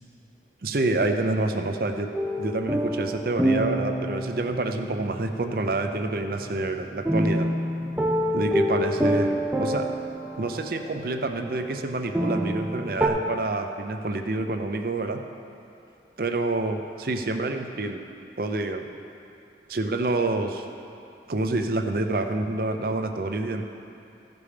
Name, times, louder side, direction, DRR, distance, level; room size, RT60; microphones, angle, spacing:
voice 1, 0.6-2.1 2.4-7.5 8.3-9.9 10.4-15.2 16.2-18.0 18.4-18.9 19.7-20.6 21.3-23.6, right 2 dB, 55° right, 6 dB, 0.6 m, -27 dB
sound 1, 2.1-13.1, equal, 10° right, 0.5 m, -28 dB
14.5 x 5.3 x 4.9 m, 2.7 s
head